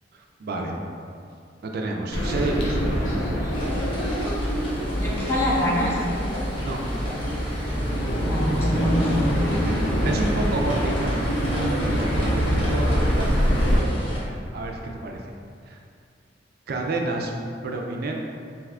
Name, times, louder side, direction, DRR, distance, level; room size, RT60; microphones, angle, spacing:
voice 1, 0.4-0.7 1.6-2.8 6.6-6.8 9.6-11.2 11.5-15.2 15.7-15.8 16.7-17.3 17.6-18.1, right 2 dB, 55° right, 1 dB, 0.4 m, -30 dB
sound 1, 2.1-13.8, equal, 80° left, 0.6 m, -24 dB
sound 2, 3.5-14.2, equal, 30° left, 0.8 m, -36 dB
voice 2, 5.0-6.0 8.2-9.4, equal, 15° left, -7 dB, 0.4 m, -24 dB
2.7 x 2.4 x 3.2 m, 2.4 s
head